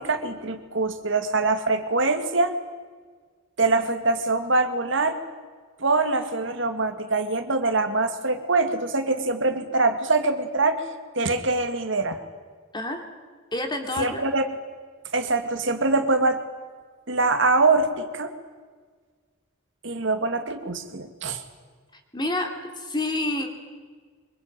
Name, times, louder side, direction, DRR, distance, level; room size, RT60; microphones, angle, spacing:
voice 1, 0.0-2.5 3.6-5.2 5.8-10.8 11.2-12.2 14.0-14.5 15.1-16.4 17.1-18.3 19.8-21.4, right 3 dB, 65° right, 7 dB, 2.2 m, -23 dB
voice 2, 12.7-13.0 13.5-14.2 22.1-23.5, left 2 dB, 20° left, 4 dB, 3.3 m, -28 dB
24.5 x 23.0 x 9.1 m, 1.5 s
head